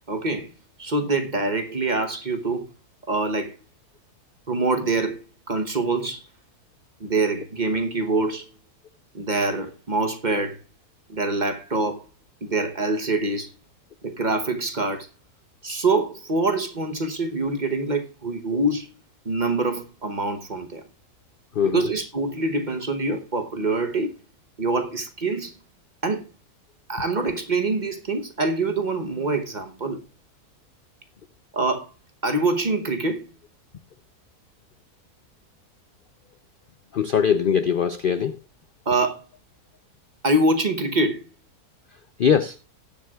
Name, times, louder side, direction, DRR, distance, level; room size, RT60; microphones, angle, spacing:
voice 1, 0.1-0.5 0.8-2.7 3.1-3.5 4.5-6.2 7.0-8.5 9.1-10.6 11.1-12.0 12.4-13.5 14.0-15.1 15.6-18.9 19.2-20.8 21.6-24.2 24.6-25.5 26.0-26.3 26.9-30.0 31.5-31.9 32.2-33.3 38.9-39.2 40.2-41.2, right 2 dB, 35° right, 0.9 m, -25 dB
voice 2, 36.9-38.4 42.2-42.6, left 7 dB, 70° left, 0.5 m, -21 dB
19.0 x 7.6 x 2.3 m
omnidirectional pair, 1.7 m